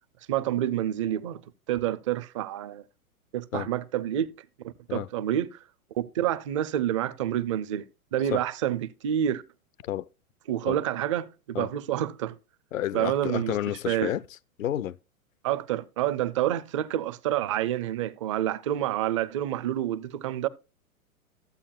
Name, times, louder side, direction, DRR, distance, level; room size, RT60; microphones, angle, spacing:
voice 1, 0.3-1.4 1.7-2.8 3.3-4.3 4.6-5.6 5.9-7.9 8.1-9.4 10.5-12.4 12.9-13.5 13.9-14.1 15.4-20.5, right 11 dB, 25° right, 0.4 m, -28 dB
voice 2, 12.7-15.0, left 12 dB, 65° left, 0.6 m, -31 dB
14.5 x 8.5 x 2.3 m
figure-of-eight pair, 105°, 43 cm